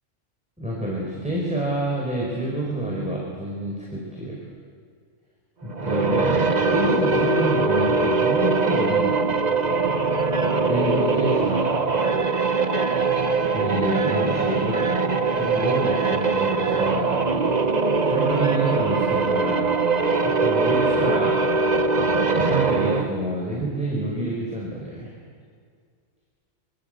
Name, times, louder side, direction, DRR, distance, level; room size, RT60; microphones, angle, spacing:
voice 1, 0.6-4.4 5.6-9.3 10.3-11.7 13.5-14.8 15.3-17.6 18.0-19.6 19.9-21.7 22.4-25.1, right 1 dB, 5° right, -4 dB, 5.2 m, -28 dB
sound 1, 5.7-23.2, right 4 dB, 35° right, 1.2 m, -22 dB
27.0 x 24.5 x 8.0 m, 2.1 s
omnidirectional pair, 1.3 m